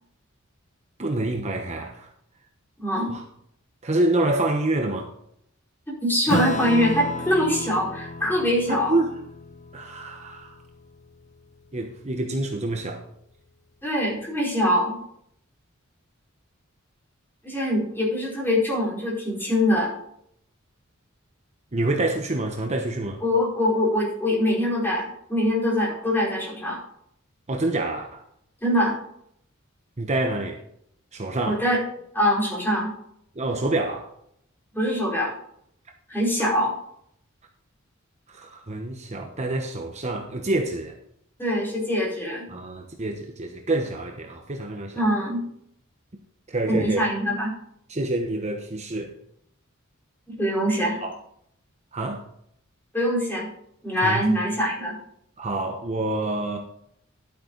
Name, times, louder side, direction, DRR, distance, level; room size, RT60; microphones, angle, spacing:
voice 1, 1.0-2.1 2.9-3.2 3.8-5.1 8.7-9.1 9.7-10.6 11.7-13.1 21.7-23.2 27.5-28.3 30.0-30.6 31.1-31.6 33.3-34.1 36.4-36.5 38.3-41.0 42.5-45.0 46.5-47.1 47.9-49.1 51.0-51.1 51.9-52.3 54.0-54.3 55.4-56.6, right 2 dB, 35° right, 1.1 m, -27 dB
voice 2, 2.8-3.2 5.9-9.0 13.8-15.0 17.4-19.9 23.2-26.8 28.6-29.0 31.4-31.8 32.1-32.9 34.7-35.3 36.1-36.7 41.4-42.5 44.9-45.4 46.7-47.5 50.3-51.0 52.9-53.5 53.8-55.0, equal, 10° left, 4.7 m, -23 dB
Acoustic guitar / Strum, 6.3-11.1, left 1 dB, 35° left, 0.8 m, -32 dB
12.0 x 8.7 x 4.0 m
head